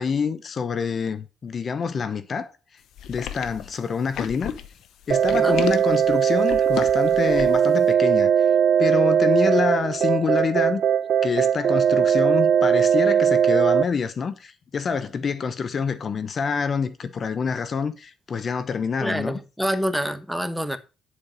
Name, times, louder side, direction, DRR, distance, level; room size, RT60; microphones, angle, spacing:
voice 1, 0.0-2.5 3.1-4.5 5.1-8.5 8.8-10.8 11.2-19.4, left 6 dB, 45° left, 0.8 m, -26 dB
sound 1, 3.0-7.7, left 10 dB, 80° left, 0.9 m, -33 dB
sound 2, 5.1-13.8, right 8 dB, 60° right, 0.5 m, -19 dB
voice 2, 19.0-20.8, equal, ahead, 1.2 m, -26 dB
10.5 x 5.0 x 5.1 m
cardioid pair, 90°, 0 cm